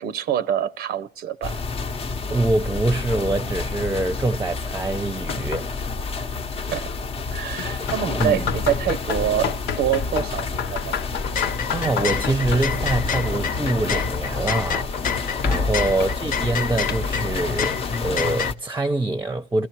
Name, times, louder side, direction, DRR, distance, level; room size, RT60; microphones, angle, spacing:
voice 1, 0.0-1.6 6.2-6.3 6.6-6.9 7.3-10.9 15.4-15.8, right 10 dB, 70° right, 0.7 m, -26 dB
sound 1, 1.4-18.5, left 4 dB, 35° left, 0.8 m, -29 dB
voice 2, 2.3-5.7 7.8-8.5 11.7-14.9 15.4-19.7, right 2 dB, 15° right, 0.7 m, -25 dB
sound 2, 5.2-18.5, left 7 dB, 80° left, 0.9 m, -33 dB
sound 3, 11.1-18.5, left 7 dB, 55° left, 1.0 m, -29 dB
29.0 x 14.5 x 2.9 m
cardioid pair, 110°, 17 cm